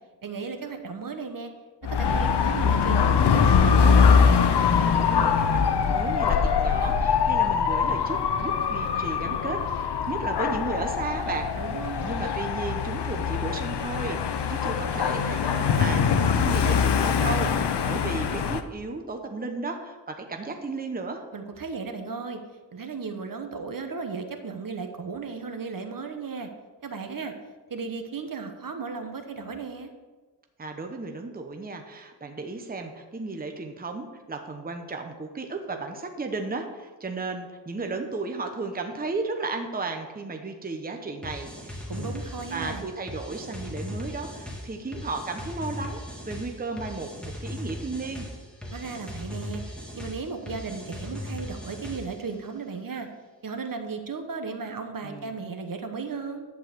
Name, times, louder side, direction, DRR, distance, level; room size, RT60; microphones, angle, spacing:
voice 1, 0.2-1.5 1.8-3.8 11.5-12.3 21.3-22.4 22.7-26.5 26.8-27.3 27.7-29.9 41.9-42.9 48.7-49.6 49.9-53.1 53.4-56.5, right 4 dB, 50° right, 6 dB, 1.1 m, -35 dB
Dog / Motorcycle, 1.8-18.6, left 6 dB, 70° left, 0.8 m, -23 dB
voice 2, 4.6-11.5 12.0-21.2 30.6-42.1 42.5-48.3 55.0-55.3, right 3 dB, 20° right, 4 dB, 0.9 m, -34 dB
sound 1, 41.2-52.3, left 1 dB, ahead, 2.1 m, -38 dB
11.0 x 4.7 x 7.8 m, 1.3 s
wide cardioid pair, 105°, 42 cm